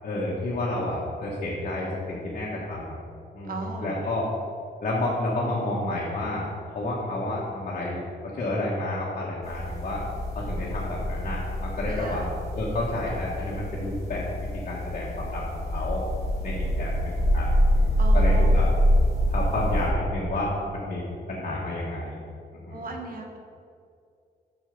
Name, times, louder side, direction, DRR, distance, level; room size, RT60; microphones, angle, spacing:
voice 1, 0.0-3.0 3.3-4.2 4.8-8.0 8.3-10.0 10.3-12.2 12.5-14.3 14.7-16.0 16.4-18.7 19.3-21.0 21.3-22.2 22.5-22.8, left 1 dB, 45° left, -5 dB, 1.4 m, -30 dB
voice 2, 3.5-4.0 11.9-12.3 18.0-18.6 22.7-23.4, right 3 dB, 55° right, 2 dB, 1.2 m, -36 dB
sound 1, 9.4-19.9, equal, 20° left, 2.1 m, -25 dB
7.3 x 6.2 x 5.3 m, 2.4 s
wide cardioid pair, 145°, 17 cm